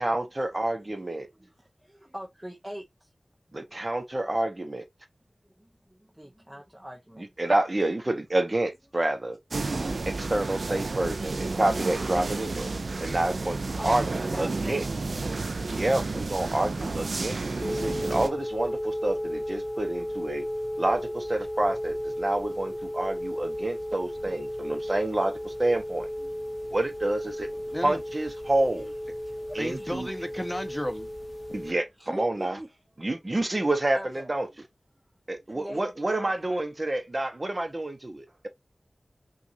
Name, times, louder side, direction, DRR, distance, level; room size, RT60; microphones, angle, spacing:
voice 1, 0.0-1.3 3.5-4.8 7.4-9.4 9.6-12.7 13.0-14.0 14.4-14.8 15.7-17.4 17.7-20.4 20.8-26.1 26.7-28.9 29.5-30.1 31.5-32.6 33.0-34.5 35.3-38.5, right 1 dB, 40° right, 1.0 m, -28 dB
voice 2, 0.5-1.0 1.2-3.1 3.6-3.9 5.6-7.4 12.6-14.9 22.5-23.1 23.7-24.2 25.4-25.5 26.2-26.8 27.2-27.4 27.7-27.8 28.4-28.9 29.8-29.9 32.0-33.4 33.9-34.3 35.4-36.9, equal, 15° right, 0.9 m, -45 dB
sound 1, 9.5-18.3, right 3 dB, 75° right, 0.5 m, -31 dB
sound 2, 17.6-31.7, equal, 40° left, 0.7 m, -34 dB
voice 3, 29.5-31.1, equal, 10° left, 1.1 m, -33 dB
5.8 x 2.6 x 2.7 m
cardioid pair, 40°, 0 cm